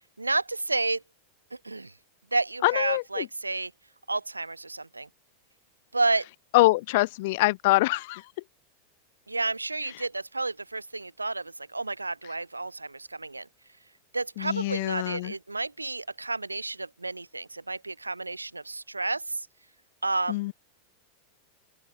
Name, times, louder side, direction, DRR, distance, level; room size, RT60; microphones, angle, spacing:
voice 1, 0.2-1.0 1.5-1.9 2.3-3.7 4.1-5.1 5.9-6.3 9.3-13.5 14.1-19.5 20.0-20.5, right 3 dB, 80° right, 7.2 m, -31 dB
voice 2, 2.6-3.3 6.5-8.2 14.4-15.3 20.3-20.5, left 21 dB, 50° left, 4.0 m, -24 dB
open air
figure-of-eight pair, 90°, 0 cm